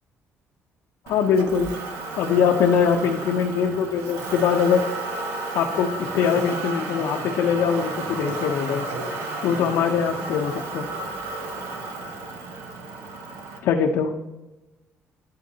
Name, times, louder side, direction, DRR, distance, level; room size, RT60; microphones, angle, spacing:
voice 1, 1.1-1.7 2.2-4.8 5.5-8.8 9.4-10.9 13.6-14.1, left 7 dB, 75° left, 2 dB, 0.6 m, -22 dB
Motor vehicle (road), 1.1-13.6, right 2 dB, 90° right, 1.3 m, -32 dB
10.5 x 9.3 x 2.8 m, 1.1 s
cardioid pair, 160°, 5 cm